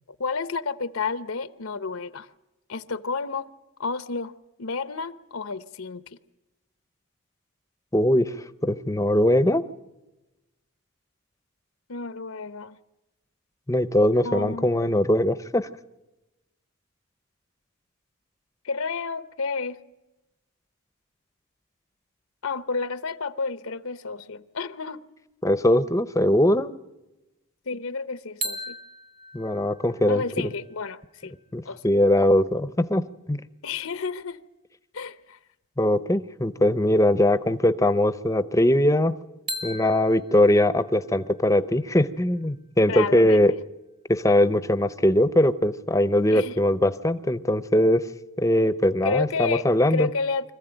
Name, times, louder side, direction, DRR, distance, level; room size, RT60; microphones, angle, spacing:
voice 1, 0.2-2.3 2.7-3.5 3.8-4.3 4.6-6.0 11.9-12.8 14.2-15.0 18.6-19.8 22.4-25.0 27.7-28.7 30.1-31.4 31.6-31.8 33.6-34.4 34.9-35.4 42.9-43.4 46.3-46.6 49.0-50.5, left 4 dB, 75° left, 0.9 m, -31 dB
voice 2, 7.9-8.3 8.6-9.6 13.7-15.7 25.4-26.7 29.3-30.2 31.5-33.4 35.8-39.1 39.6-43.5 44.1-48.0 48.4-50.1, left 1 dB, 15° left, 0.7 m, -21 dB
sound 1, 28.4-32.3 39.5-43.3, equal, 20° right, 1.0 m, -40 dB
25.0 x 15.0 x 9.0 m
head